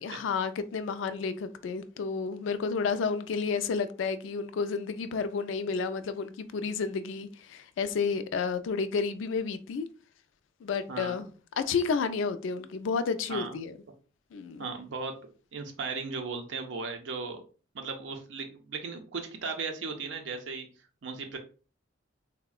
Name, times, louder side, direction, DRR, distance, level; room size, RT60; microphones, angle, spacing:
voice 1, 0.0-9.9 10.6-11.3 11.6-13.7 14.3-14.6, left 5 dB, 80° left, 0.3 m, -31 dB
voice 2, 10.9-11.3 13.3-13.6 14.6-15.1 15.5-17.4 17.7-20.7 21.0-21.4, right 4 dB, 70° right, 0.5 m, -36 dB
3.5 x 2.1 x 2.3 m
head